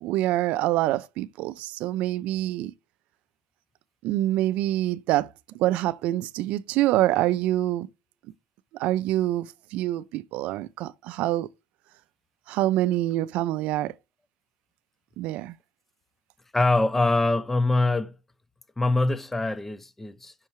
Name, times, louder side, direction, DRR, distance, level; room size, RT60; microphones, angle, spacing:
voice 1, 0.0-2.7 4.0-5.3 5.6-7.9 8.7-11.5 12.5-13.9 15.2-15.5, right 15 dB, 65° right, 0.4 m, -26 dB
voice 2, 16.5-18.1 18.8-20.3, left 2 dB, 10° left, 0.4 m, -23 dB
5.7 x 5.5 x 3.0 m
cardioid pair, 145°, 2 cm